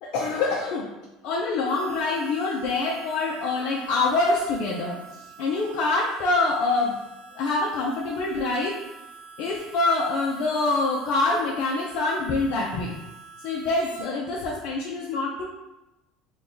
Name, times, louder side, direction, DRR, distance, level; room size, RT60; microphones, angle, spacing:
voice 1, 0.0-0.9 1.2-7.0 7.3-8.8 9.4-12.9 13.4-15.4, left 3 dB, 65° left, -2 dB, 0.5 m, -25 dB
Harmonica, 1.6-14.1, right 5 dB, 85° right, 1.0 m, -46 dB
3.5 x 2.3 x 3.8 m, 1.0 s
supercardioid pair, 100°, 0 cm